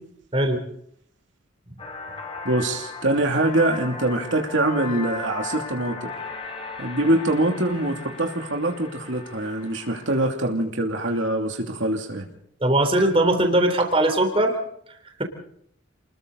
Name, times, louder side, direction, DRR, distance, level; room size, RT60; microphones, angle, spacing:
sound 1, 1.8-10.3, left 4 dB, 30° left, 4.5 m, -37 dB
voice 1, 2.4-6.1 6.8-12.3, right 1 dB, 70° right, 2 dB, 2.8 m, -24 dB
voice 2, 12.6-14.6, right 1 dB, 30° right, 5 dB, 3.5 m, -20 dB
30.0 x 21.0 x 4.1 m, 0.68 s
head